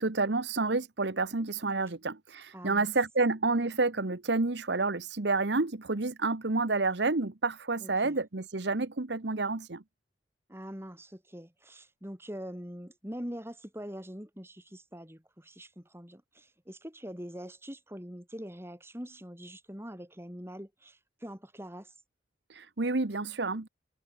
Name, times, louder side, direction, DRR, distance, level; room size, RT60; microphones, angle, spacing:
voice 1, 0.0-9.8 22.5-23.7, right 3 dB, 65° right, 1.2 m, -29 dB
voice 2, 2.5-2.9 7.8-8.2 10.5-21.9, equal, 15° right, 6.2 m, -43 dB
head